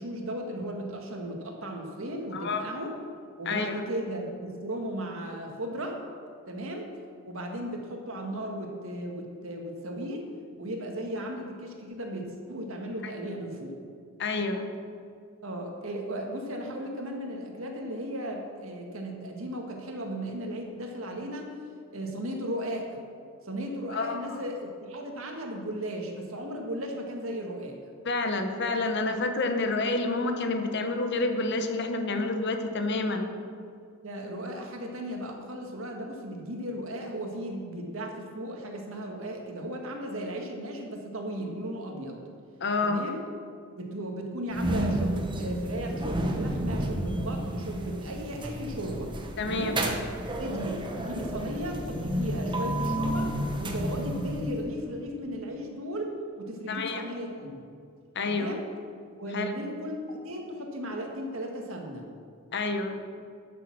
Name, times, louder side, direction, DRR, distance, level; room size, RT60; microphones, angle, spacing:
voice 1, 0.0-2.9 3.4-6.0 6.5-6.9 7.2-10.2 10.6-13.8 15.4-21.5 21.9-23.0 23.4-27.8 34.0-42.2 42.8-43.2 43.8-49.1 49.4-49.8 50.4-53.3 53.6-57.7 58.3-58.6 59.2-62.0, right 1 dB, 70° right, 2 dB, 1.8 m, -36 dB
voice 2, 2.3-2.6 3.5-3.7 14.2-14.7 23.9-24.4 28.0-33.3 42.6-43.0 49.4-49.7 56.7-57.0 58.1-58.5 59.3-59.5 62.5-63.0, left 3 dB, 55° left, 6 dB, 1.0 m, -28 dB
sound 1, 44.5-54.7, right 1 dB, 25° right, 1.0 m, -31 dB
11.5 x 7.0 x 6.1 m, 2.3 s
head